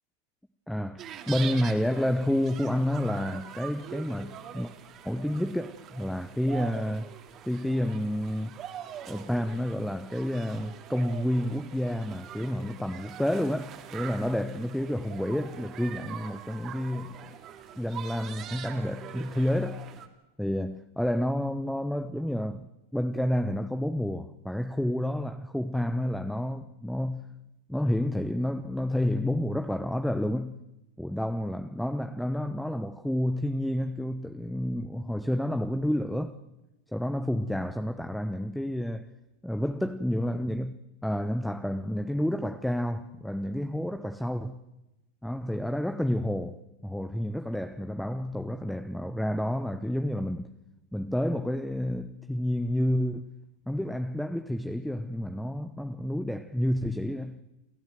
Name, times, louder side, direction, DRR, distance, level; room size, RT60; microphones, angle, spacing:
voice 1, 0.7-4.7 5.0-7.1 7.4-8.6 9.0-17.2 17.8-19.8 20.4-27.3 27.7-30.6 31.0-36.3 36.9-39.1 39.4-44.6 45.2-50.5 50.9-53.3 53.7-57.4, left 1 dB, ahead, 0.9 m, -30 dB
sound 1, 1.0-20.1, right 9 dB, 40° right, 2.5 m, -43 dB
29.5 x 13.0 x 7.8 m
hypercardioid pair, 105°, 0 cm